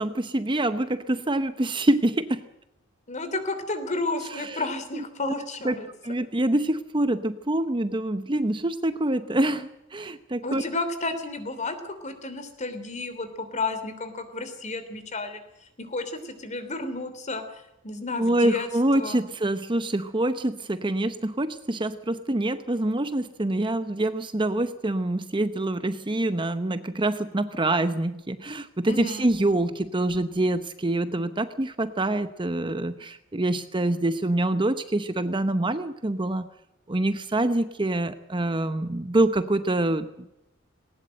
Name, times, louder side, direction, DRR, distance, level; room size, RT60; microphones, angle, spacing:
voice 1, 0.0-2.4 4.3-4.6 4.9-5.3 5.6-5.7 6.0-10.6 18.2-36.5 36.9-40.3, right 1 dB, 25° right, 11 dB, 0.8 m, -26 dB
voice 2, 3.1-5.9 10.4-15.4 15.8-18.7 18.9-19.2 28.9-29.3, left 2 dB, 35° left, 10 dB, 3.2 m, -32 dB
19.5 x 19.0 x 7.7 m, 0.87 s
head